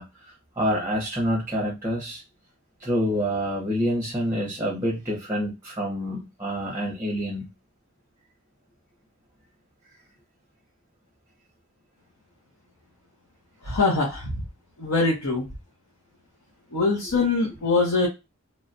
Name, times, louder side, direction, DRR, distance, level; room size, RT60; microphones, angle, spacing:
voice 1, 0.0-2.2 2.8-7.5, equal, 10° right, -2 dB, 0.6 m, -27 dB
voice 2, 13.6-14.3 14.8-15.4 16.7-18.1, left 3 dB, 90° left, -3 dB, 0.9 m, -23 dB
3.1 x 2.2 x 2.5 m, 0.25 s
head